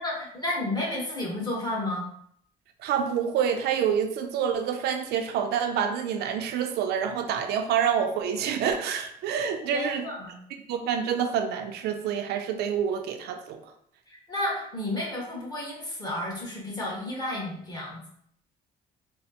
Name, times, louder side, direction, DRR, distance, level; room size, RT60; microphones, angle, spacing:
voice 1, 0.0-2.1 9.7-10.3 14.1-18.0, left 1 dB, 25° left, -3 dB, 1.3 m, -32 dB
voice 2, 2.8-10.1 10.7-13.6, right 8 dB, 75° right, 6 dB, 0.4 m, -27 dB
4.2 x 2.0 x 2.7 m, 0.67 s
cardioid pair, 110°, 17 cm